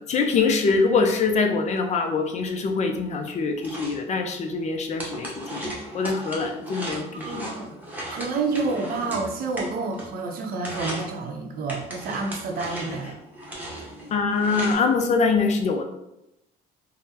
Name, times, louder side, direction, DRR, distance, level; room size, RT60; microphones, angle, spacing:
voice 1, 0.0-7.1 7.3-7.5 14.1-15.9, left 4 dB, 45° left, 4 dB, 0.4 m, -24 dB
sound 1, 3.2-10.3 10.6-11.1 11.7-14.7, right 1 dB, 10° right, 0.9 m, -37 dB
voice 2, 7.1-7.8 8.1-13.1, right 3 dB, 60° right, 2 dB, 0.6 m, -29 dB
3.6 x 2.1 x 2.7 m, 0.87 s
cardioid pair, 110°, 17 cm